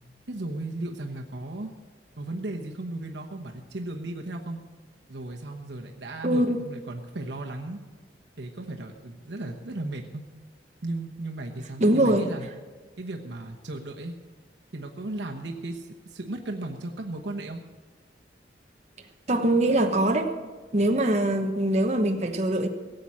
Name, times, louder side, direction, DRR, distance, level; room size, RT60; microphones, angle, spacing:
voice 1, 0.3-1.7 2.2-4.6 5.1-7.8 8.4-10.2 10.8-12.5 13.0-14.1 14.7-17.6, right 2 dB, 80° right, 2 dB, 1.1 m, -35 dB
voice 2, 6.2-6.6 11.8-12.3 19.3-20.3 20.7-22.7, right 1 dB, 40° right, 3 dB, 1.0 m, -22 dB
17.0 x 7.8 x 8.6 m, 1.4 s
head